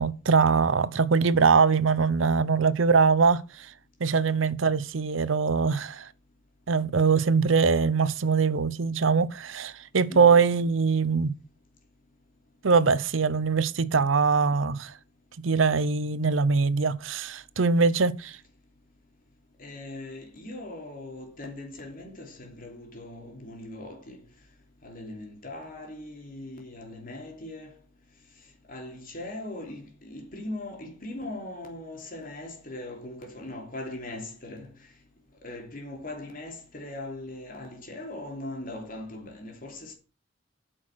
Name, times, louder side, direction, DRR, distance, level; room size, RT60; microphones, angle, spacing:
voice 1, 0.0-3.7 4.0-6.1 6.7-11.4 12.6-14.9 15.4-18.4, right 5 dB, 90° right, 0.7 m, -22 dB
voice 2, 10.1-10.4 19.6-24.2 24.8-27.7 28.7-34.7 35.4-39.9, left 1 dB, 45° left, 3.1 m, -40 dB
8.9 x 6.3 x 6.2 m
head